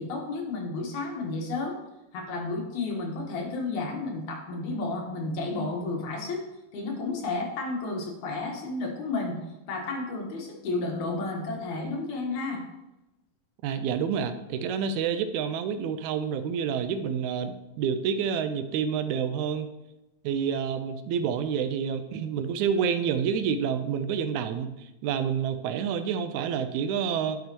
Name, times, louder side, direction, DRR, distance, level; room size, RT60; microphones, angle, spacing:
voice 1, 0.0-1.8 2.1-6.4 6.7-9.4 9.7-12.6, left 3 dB, 90° left, 0 dB, 2.8 m, -32 dB
voice 2, 13.6-19.7 20.2-27.4, right 7 dB, 85° right, 10 dB, 2.0 m, -28 dB
11.0 x 5.6 x 3.0 m, 0.94 s
omnidirectional pair, 3.3 m